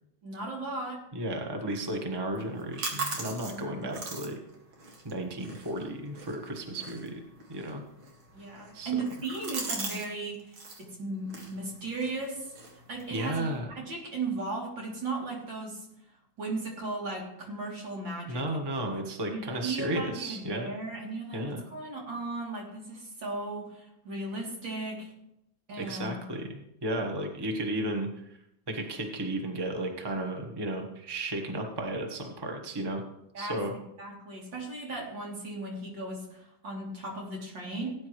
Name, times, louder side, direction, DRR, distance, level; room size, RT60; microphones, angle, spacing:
voice 1, 0.2-1.0 3.4-3.9 8.3-12.5 12.9-13.5 13.8-15.9 16.4-18.6 19.3-25.1 25.7-26.2 33.3-33.6 34.0-38.0, right 3 dB, 70° right, -3 dB, 3.8 m, -36 dB
voice 2, 1.1-4.4 5.0-7.2 7.5-7.8 8.7-8.9 13.1-13.7 18.3-20.7 21.3-21.6 25.8-28.3 28.7-33.0 33.4-33.7, right 1 dB, 15° right, 3 dB, 1.1 m, -34 dB
sound 1, 2.4-10.1 10.3-10.8 11.3-13.6, right 3 dB, 85° right, 2.8 m, -41 dB
18.0 x 9.5 x 3.2 m, 0.82 s
omnidirectional pair, 2.1 m